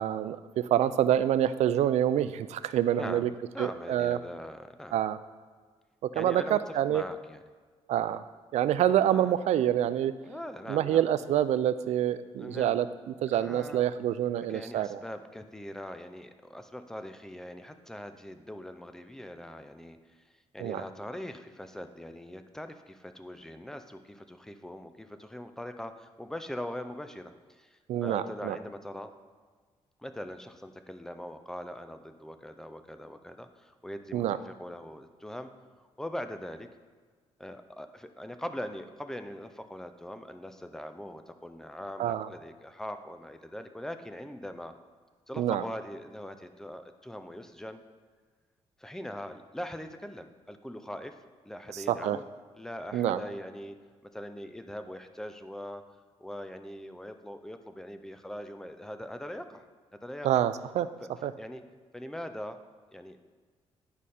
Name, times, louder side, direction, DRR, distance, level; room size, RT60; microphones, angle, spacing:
voice 1, 0.0-3.3 3.6-4.2 4.9-5.2 6.0-7.0 7.9-8.2 8.5-10.1 10.7-15.0 20.6-20.8 27.9-28.6 34.1-34.4 42.0-42.3 45.4-45.6 51.7-52.2 52.9-53.2 60.2-60.9 61.2-61.3, right 11 dB, 80° right, 14 dB, 0.4 m, -27 dB
voice 2, 2.9-5.0 6.1-7.4 9.0-9.3 10.2-11.1 12.4-12.7 13.3-14.0 14.3-20.2 20.5-29.1 30.0-36.7 37.4-44.7 45.3-47.8 48.8-51.2 51.4-52.3 52.6-53.8 54.1-55.8 56.2-59.6 60.0-60.4 61.0-61.1 61.4-61.6 61.9-62.6 62.9-63.2, left 1 dB, 5° left, 8 dB, 0.4 m, -41 dB
11.0 x 4.9 x 4.2 m, 1.5 s
wide cardioid pair, 175°, 11 cm